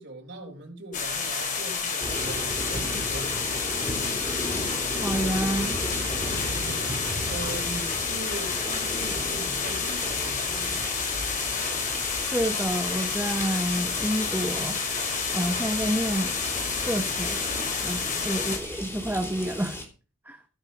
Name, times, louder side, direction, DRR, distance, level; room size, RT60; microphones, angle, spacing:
voice 1, 0.0-3.9 6.5-11.0 18.0-18.5, right 1 dB, 55° right, 4.3 m, -41 dB
sound 1, 0.9-18.6, left 5 dB, 35° left, 2.8 m, -30 dB
sound 2, 2.0-19.8, left 1 dB, 10° left, 3.5 m, -35 dB
voice 2, 5.0-5.8 12.3-14.8 15.3-16.4 16.8-17.4 17.8-19.8 20.2-20.4, right 1 dB, 10° right, 1.0 m, -28 dB
16.0 x 8.0 x 5.4 m
head